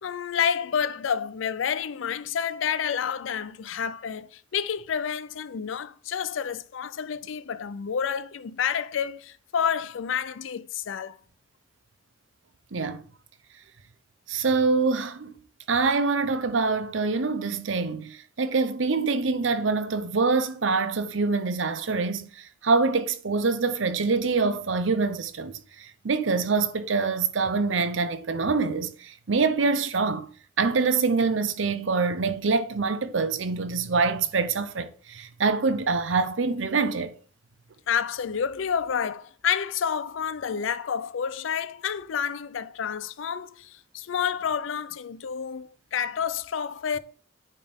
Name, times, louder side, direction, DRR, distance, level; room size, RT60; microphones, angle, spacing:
voice 1, 0.0-11.2 37.9-47.0, left 7 dB, 80° left, 0.4 m, -29 dB
voice 2, 12.7-13.1 14.3-15.3 15.7-30.3 30.6-37.1, right 4 dB, 75° right, 0.7 m, -25 dB
8.9 x 4.2 x 3.5 m
head